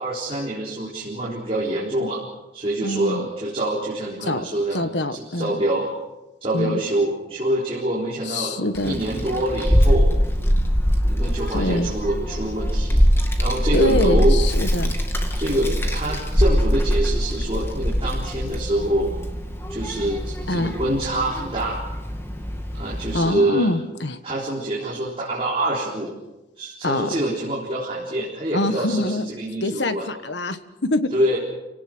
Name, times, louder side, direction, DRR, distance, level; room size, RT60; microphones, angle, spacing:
voice 1, 0.0-2.2 2.5-5.9 6.4-8.6 8.8-10.1 11.0-13.0 13.4-14.4 15.3-19.1 19.7-21.8 22.7-23.7 24.2-26.1 26.6-30.1 31.1-31.4, right 1 dB, 30° right, -5 dB, 4.1 m, -25 dB
voice 2, 2.8-3.3 4.2-4.4 4.7-5.5 6.5-6.8 8.2-9.0 11.5-11.9 13.7-15.0 20.5-20.7 23.1-24.2 26.8-27.2 28.5-29.2 29.6-31.1, left 1 dB, 75° left, 10 dB, 1.5 m, -24 dB
Child speech kid speaking, 8.7-23.2, equal, 15° left, 2.0 m, -22 dB
30.0 x 18.0 x 6.2 m, 1.0 s
head